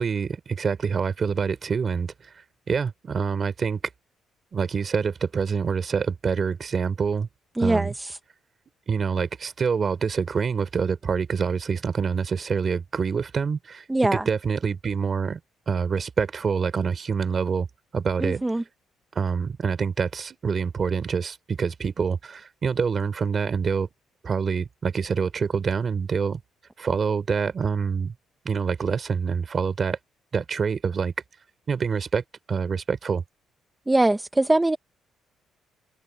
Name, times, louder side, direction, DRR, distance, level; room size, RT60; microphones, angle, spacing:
voice 1, 0.0-3.8 4.5-7.3 7.6-7.9 8.9-13.8 14.1-15.4 15.7-17.7 17.9-18.4 19.1-23.9 24.2-26.4 26.8-28.1 28.4-30.0 30.3-31.1 31.7-33.2, right 6 dB, 35° right, 3.1 m, -26 dB
voice 2, 7.6-8.2 13.9-14.2 18.2-18.6 33.9-34.8, right 2 dB, 10° right, 0.7 m, -22 dB
open air
cardioid pair, 145°, 0 cm